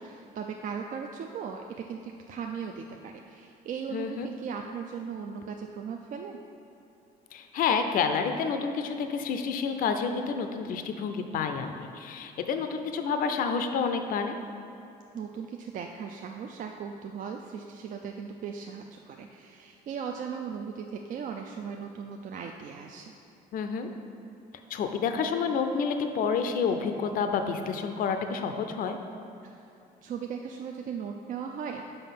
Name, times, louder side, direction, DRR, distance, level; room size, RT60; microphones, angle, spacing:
voice 1, 0.0-6.4 15.1-23.1 29.4-29.6 30.0-31.8, right 6 dB, 50° right, 3 dB, 0.4 m, -38 dB
voice 2, 3.9-4.3 7.3-14.3 23.5-23.9 24.7-29.0, left 5 dB, 55° left, 7 dB, 0.5 m, -29 dB
5.5 x 5.1 x 5.8 m, 2.7 s
cardioid pair, 110°, 17 cm